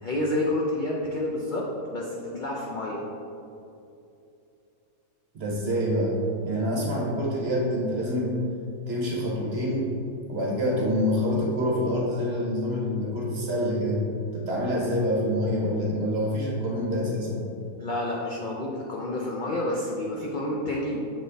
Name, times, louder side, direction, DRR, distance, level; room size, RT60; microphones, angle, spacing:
voice 1, 0.0-3.0 17.8-21.0, left 1 dB, 70° left, -3 dB, 0.4 m, -29 dB
voice 2, 5.3-6.2 6.4-8.4 8.9-10.0 10.3-14.0 14.3-17.4, equal, 45° right, -3 dB, 1.0 m, -26 dB
6.9 x 4.0 x 3.4 m, 2.6 s
omnidirectional pair, 1.6 m